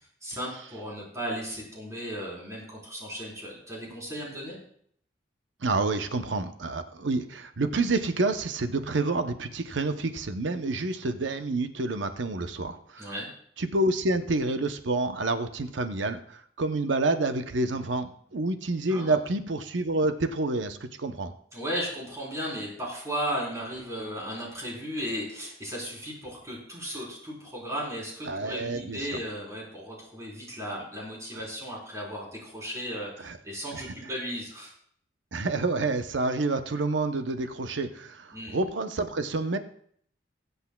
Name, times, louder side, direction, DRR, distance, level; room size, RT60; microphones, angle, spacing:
voice 1, 0.2-4.6 13.0-13.3 18.9-19.2 21.5-34.7 38.3-38.6, equal, 15° right, -4 dB, 3.8 m, -35 dB
voice 2, 5.6-13.1 13.6-21.3 28.3-29.0 33.2-33.4 33.7-33.8 35.3-39.6, right 2 dB, 75° right, 8 dB, 0.7 m, -28 dB
21.0 x 8.2 x 2.3 m, 0.63 s
head